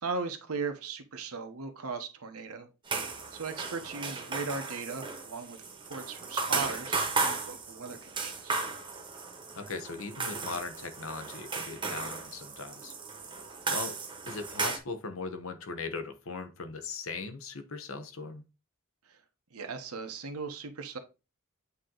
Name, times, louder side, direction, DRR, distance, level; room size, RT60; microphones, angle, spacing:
voice 1, 0.0-2.7 2.9-5.6 5.8-8.6 19.1-19.2 19.5-21.0, right 4 dB, 85° right, 1.0 m, -38 dB
sound 1, 2.9-14.8, right 4 dB, 20° right, 1.0 m, -35 dB
voice 2, 9.6-12.9 13.7-14.0 14.3-18.4, left 4 dB, 65° left, 0.9 m, -39 dB
8.2 x 2.9 x 3.9 m
head